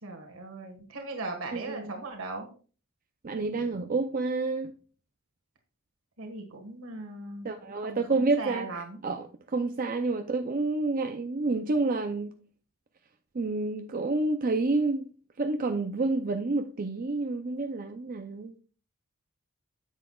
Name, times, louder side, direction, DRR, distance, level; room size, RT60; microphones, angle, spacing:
voice 1, 0.0-2.5 6.2-7.5 7.8-9.0, right 3 dB, 85° right, 1.6 m, -38 dB
voice 2, 1.5-1.9 3.2-4.7 7.4-8.7 9.0-12.3 13.3-15.1 15.4-18.6, right 3 dB, 40° right, 0.5 m, -29 dB
9.7 x 8.1 x 2.3 m
head